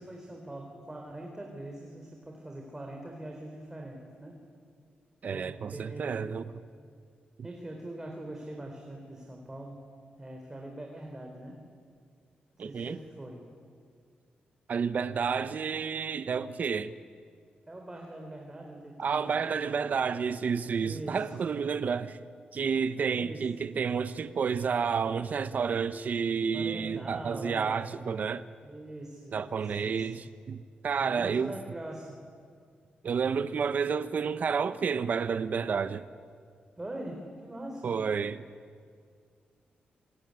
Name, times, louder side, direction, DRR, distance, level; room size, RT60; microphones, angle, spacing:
voice 1, 0.0-4.4 5.3-6.2 7.4-9.8 10.2-11.6 12.6-13.4 17.7-20.1 20.8-21.3 23.1-23.5 26.5-27.8 28.6-30.1 31.0-32.2 36.8-37.9, right 1 dB, 15° right, 4.0 m, -42 dB
voice 2, 5.2-6.4 12.6-13.0 14.7-16.9 19.0-22.2 22.5-28.5 29.3-31.5 33.0-36.0 37.8-38.4, right 6 dB, 55° right, 0.9 m, -30 dB
26.5 x 23.0 x 9.7 m
cardioid pair, 115°, 3 cm